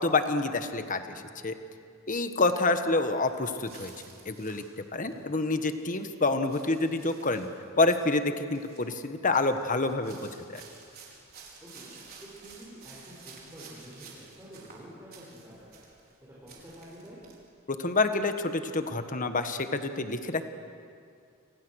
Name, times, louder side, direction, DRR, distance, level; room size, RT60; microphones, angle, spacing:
voice 1, 0.0-1.5 2.1-3.9 4.2-4.6 4.9-7.5 7.8-10.6 17.8-20.5, left 3 dB, 40° left, 8 dB, 1.4 m, -28 dB
sound 1, 3.3-5.3 5.7-6.1 6.5-8.3 8.5-8.9 9.3-16.2 16.5-17.4, right 5 dB, 45° right, 4.8 m, -52 dB
voice 2, 5.0-5.3 11.6-11.9 12.2-17.2, equal, 15° right, -9 dB, 6.6 m, -49 dB
29.5 x 25.5 x 6.5 m, 2.4 s
head